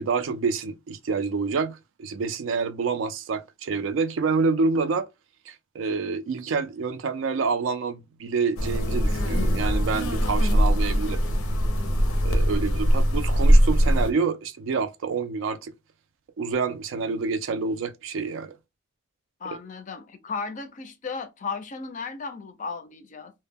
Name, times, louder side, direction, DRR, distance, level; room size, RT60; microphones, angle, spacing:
voice 1, 0.0-5.1 5.5-11.2 12.2-15.7 16.4-18.5 19.5-19.6, right 4 dB, 65° right, 0.3 m, -27 dB
sound 1, 8.6-14.1, equal, 90° left, 0.6 m, -21 dB
voice 2, 19.4-23.3, left 4 dB, 35° left, 0.4 m, -35 dB
2.1 x 2.0 x 3.4 m
head